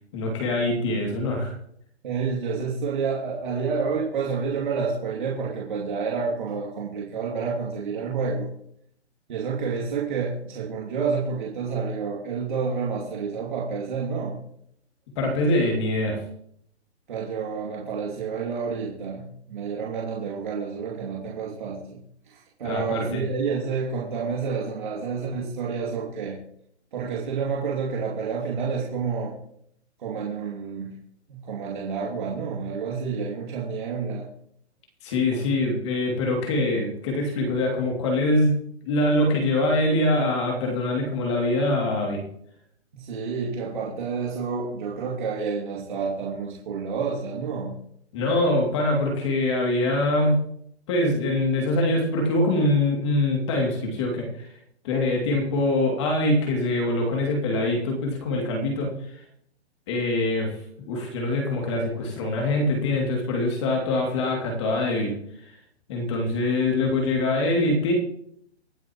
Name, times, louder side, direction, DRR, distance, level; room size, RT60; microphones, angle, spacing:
voice 1, 0.1-1.5 15.2-16.2 22.6-23.2 35.0-38.6 38.8-42.2 48.1-50.4 50.9-54.5 54.8-58.9 59.9-60.5 60.9-65.1 65.9-67.9, left 2 dB, 25° left, 0 dB, 2.7 m, -24 dB
voice 2, 2.0-8.5 9.3-14.4 17.1-22.0 22.3-26.4 26.9-29.4 30.0-31.0 31.3-34.3 42.9-47.8, right 5 dB, 45° right, -4 dB, 2.7 m, -29 dB
24.5 x 9.4 x 3.1 m, 0.71 s
hypercardioid pair, 170°, 34 cm